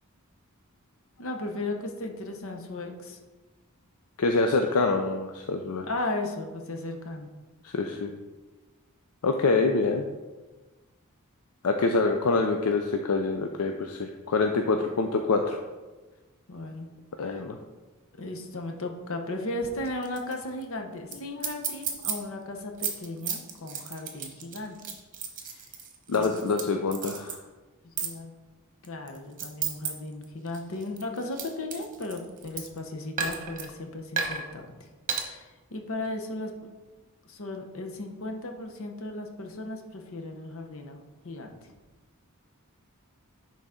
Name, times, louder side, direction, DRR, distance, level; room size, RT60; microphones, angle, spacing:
voice 1, 1.2-3.2 5.8-7.3 16.5-16.9 17.2-17.4 18.2-24.8 25.5-25.6 26.1-26.8 27.9-28.3 28.8-34.7 35.2-36.5 37.3-41.5, left 2 dB, 65° left, 4 dB, 1.0 m, -36 dB
voice 2, 4.2-5.9 7.6-8.1 9.2-10.0 11.6-15.6 17.2-17.6 21.4-21.5 26.1-27.4, left 3 dB, 80° left, 4 dB, 0.5 m, -26 dB
sound 1, 19.9-20.3 20.6-20.7 21.1-21.2 21.4-22.1 22.6-26.6 26.9-27.4 28.0-28.1 28.8-29.9 30.2-32.8 33.2-33.7 34.2-34.4 35.1-35.2, right 7 dB, 35° right, 1.0 m, -32 dB
10.5 x 4.0 x 3.7 m, 1.2 s
head